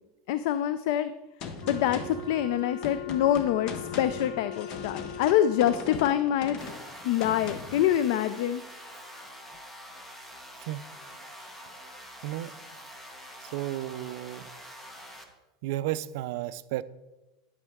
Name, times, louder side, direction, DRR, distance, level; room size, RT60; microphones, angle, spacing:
voice 1, 0.3-1.1 1.7-6.6 7.0-8.6, left 11 dB, 55° left, 13 dB, 0.3 m, -25 dB
Gunshot gunfire, 1.4-7.9, left 5 dB, 35° left, 0.8 m, -40 dB
Wind instrument woodwind instrument, 1.6-6.3, left 4 dB, 90° left, 1.5 m, -40 dB
sound 1, 6.6-15.2, equal, 5° left, 0.8 m, -46 dB
voice 2, 13.4-14.5 15.6-16.8, right 14 dB, 55° right, 13 dB, 0.3 m, -33 dB
10.5 x 8.1 x 3.5 m, 1.1 s
supercardioid pair, 165°, 2 cm